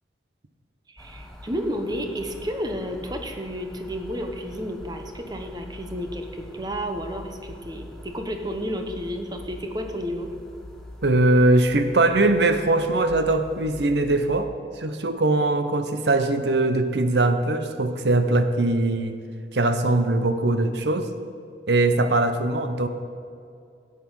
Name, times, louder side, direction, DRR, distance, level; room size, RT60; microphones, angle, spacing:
voice 1, 0.9-10.3, equal, 20° right, 4 dB, 1.0 m, -31 dB
sound 1, 1.0-14.4, left 1 dB, 5° left, 1.0 m, -44 dB
voice 2, 11.0-14.5 14.8-19.2 19.5-21.1 21.7-22.9, right 2 dB, 75° right, 9 dB, 0.8 m, -21 dB
13.0 x 8.5 x 5.6 m, 2.4 s
head